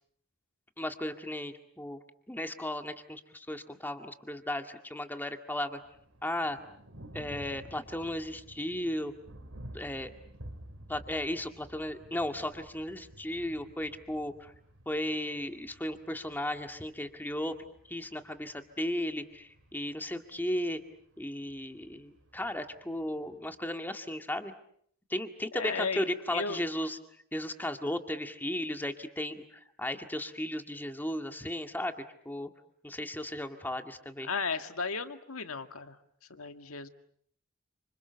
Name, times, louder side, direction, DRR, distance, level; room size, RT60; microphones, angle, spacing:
voice 1, 0.8-2.0 2.3-5.8 6.2-6.6 7.1-9.1 9.7-10.1 10.9-14.5 14.9-17.5 17.9-20.8 21.2-24.5 25.1-27.0 27.3-32.5 32.8-34.3, left 1 dB, 10° left, 6 dB, 1.9 m, -35 dB
Thunder, 5.8-23.7, right 1 dB, 70° right, 4.5 m, -52 dB
voice 2, 25.5-26.6 34.2-36.0 36.3-36.9, left 5 dB, 85° left, 8 dB, 1.9 m, -35 dB
30.0 x 27.0 x 7.0 m, 0.67 s
head